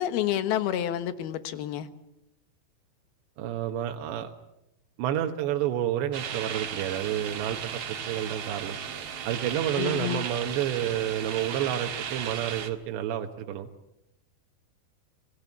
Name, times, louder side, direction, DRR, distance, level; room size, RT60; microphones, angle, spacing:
voice 1, 0.0-1.9 9.8-10.3, left 11 dB, 70° left, 3.0 m, -29 dB
voice 2, 3.4-4.3 5.0-8.8 9.3-13.7, right 11 dB, 85° right, 3.4 m, -30 dB
sound 1, 6.1-12.7, right 8 dB, 55° right, 1.7 m, -35 dB
27.0 x 20.0 x 8.4 m
omnidirectional pair, 4.9 m